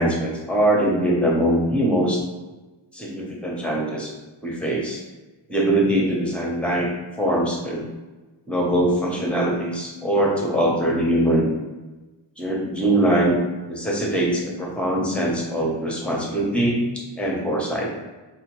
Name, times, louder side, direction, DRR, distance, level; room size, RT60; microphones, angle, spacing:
voice 1, 0.0-2.2 2.9-4.1 4.4-5.0 5.5-6.9 7.2-7.9 8.5-11.5 12.4-13.4 13.7-17.9, right 1 dB, ahead, -2 dB, 0.7 m, -22 dB
4.2 x 2.2 x 2.9 m, 1.2 s
wide cardioid pair, 135°, 47 cm